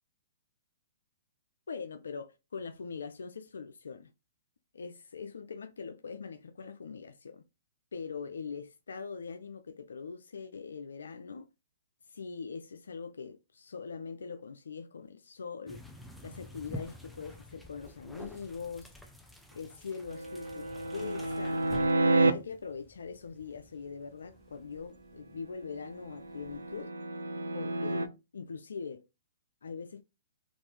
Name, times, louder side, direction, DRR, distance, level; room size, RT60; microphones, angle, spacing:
voice 1, 1.7-4.1 4.7-7.4 7.9-11.5 12.1-15.8 16.2-18.9 19.5-21.6 22.3-26.9 27.5-29.0 29.6-30.0, left 5 dB, 75° left, 0.3 m, -42 dB
sound 1, 15.7-26.9, left 1 dB, ahead, 0.6 m, -50 dB
sound 2, 20.1-22.3 25.7-28.1, right 2 dB, 90° right, 0.3 m, -30 dB
2.7 x 2.4 x 3.1 m
hypercardioid pair, 120°, 0 cm